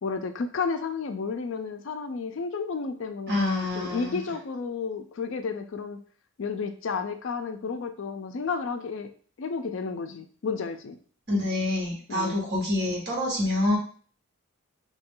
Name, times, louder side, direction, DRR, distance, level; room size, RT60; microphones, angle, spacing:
voice 1, 0.0-6.0 6.4-9.1 9.4-11.0 12.1-12.4, left 5 dB, 60° left, 8 dB, 0.4 m, -32 dB
voice 2, 3.3-4.2 11.3-13.8, left 1 dB, 50° right, -2 dB, 1.4 m, -26 dB
3.1 x 2.7 x 3.7 m, 0.43 s
head